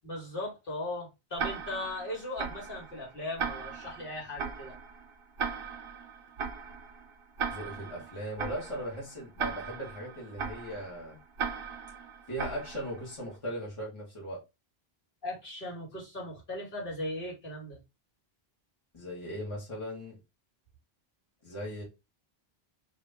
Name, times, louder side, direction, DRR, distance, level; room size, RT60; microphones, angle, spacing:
voice 1, 0.0-4.7 15.2-17.8, left 1 dB, 60° left, 1.8 m, -38 dB
Tick-tock, 1.4-13.2, right 6 dB, 65° right, 0.9 m, -38 dB
voice 2, 7.5-11.2 12.3-14.4 18.9-20.2 21.4-21.8, equal, 30° left, 1.5 m, -38 dB
2.9 x 2.6 x 3.4 m
omnidirectional pair, 1.0 m